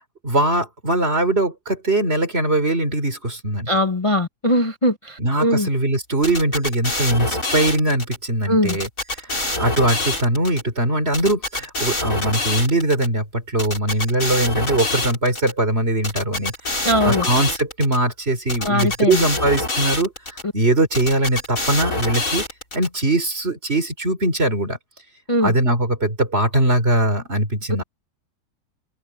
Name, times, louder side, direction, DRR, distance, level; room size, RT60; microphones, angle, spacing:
voice 1, 0.2-3.7 5.2-8.9 9.6-16.8 17.0-20.1 20.5-22.5 22.7-24.8 25.4-27.8, right 1 dB, 40° right, 4.3 m, -21 dB
voice 2, 3.7-5.7 8.5-8.8 16.8-17.3 18.6-19.2 20.4-20.5 25.3-25.5, left 1 dB, 20° left, 1.3 m, -20 dB
sound 1, 6.2-8.2 8.7-10.6 11.1-13.1 13.6-15.5 16.0-18.0 18.5-20.4 20.9-22.9, left 2 dB, 65° left, 7.7 m, -25 dB
omnidirectional pair, 1.6 m